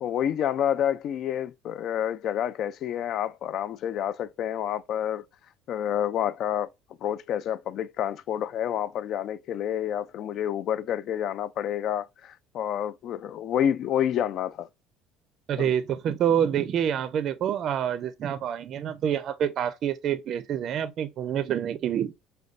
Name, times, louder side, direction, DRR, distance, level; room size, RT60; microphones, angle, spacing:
voice 1, 0.0-5.2 5.7-6.7 7.0-14.7 15.6-15.7, left 10 dB, 55° left, 0.3 m, -28 dB
voice 2, 15.5-22.1, right 9 dB, 50° right, 0.4 m, -27 dB
5.1 x 2.2 x 2.4 m
cardioid pair, 105°, 0 cm